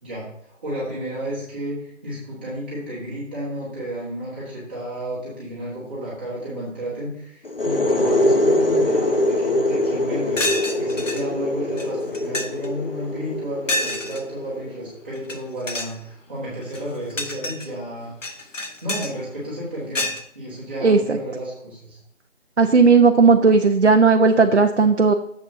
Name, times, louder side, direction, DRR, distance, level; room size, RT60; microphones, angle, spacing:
voice 1, 0.0-10.4 10.7-18.1 18.8-20.1 20.3-22.0, right 1 dB, 10° right, -10 dB, 1.9 m, -32 dB
sound 1, 7.4-15.0, left 1 dB, 45° left, 0.8 m, -23 dB
sound 2, 9.9-10.0 10.4-11.2 11.8-11.9 12.1-12.7 13.7-14.2 15.2-15.4 15.6-16.0 16.6-17.7 18.2-19.1 19.9-20.2, left 2 dB, 80° left, 2.0 m, -27 dB
voice 2, 20.8-21.2 22.6-25.1, right 4 dB, 60° right, 4 dB, 0.8 m, -15 dB
11.0 x 7.9 x 2.8 m, 0.74 s
figure-of-eight pair, 175°, 38 cm